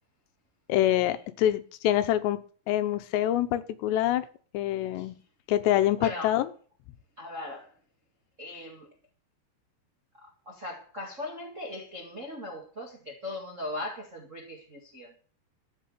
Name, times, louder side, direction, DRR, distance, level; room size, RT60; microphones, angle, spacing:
voice 1, 0.7-2.4 2.7-4.3 4.5-5.2 5.5-6.5, left 12 dB, 85° left, 3.0 m, -25 dB
voice 2, 6.0-6.3 7.2-7.7 8.4-8.9 10.2-15.1, left 1 dB, 45° right, 1.0 m, -39 dB
13.5 x 6.0 x 8.4 m
omnidirectional pair, 4.9 m